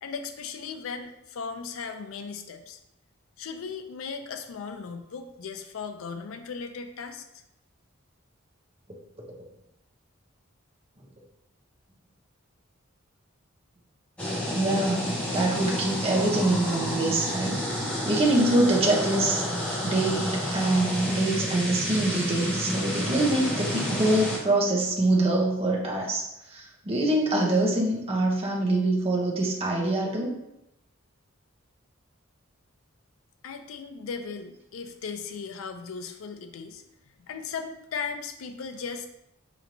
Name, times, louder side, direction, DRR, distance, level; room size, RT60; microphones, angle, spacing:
voice 1, 0.0-2.8 3.4-7.2 33.4-36.8 37.2-39.1, left 5 dB, 80° left, 7 dB, 0.4 m, -37 dB
sound 1, 14.2-24.4, equal, 5° left, 0.8 m, -30 dB
voice 2, 14.5-17.6 18.0-19.4 19.8-30.3, right 2 dB, 30° right, -2 dB, 0.7 m, -25 dB
4.3 x 3.0 x 2.6 m, 0.85 s
head